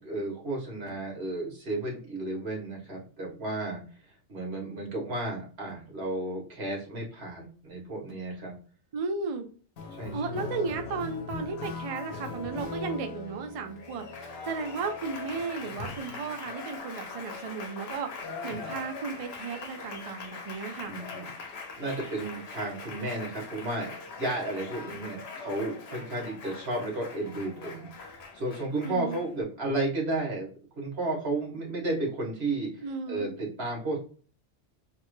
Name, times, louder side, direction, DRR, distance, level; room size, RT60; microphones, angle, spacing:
voice 1, 0.0-3.8 4.3-8.5 10.0-10.4 20.9-21.3 21.8-23.9 24.1-30.5 30.8-34.0, right 2 dB, 85° right, -2 dB, 1.5 m, -33 dB
voice 2, 8.9-9.5 10.1-21.0 28.8-29.2 32.8-33.3, right 5 dB, 50° right, 6 dB, 0.4 m, -35 dB
Applause, 9.8-29.4, left 4 dB, 80° left, 0.9 m, -41 dB
3.3 x 2.1 x 3.1 m, 0.41 s
omnidirectional pair, 1.1 m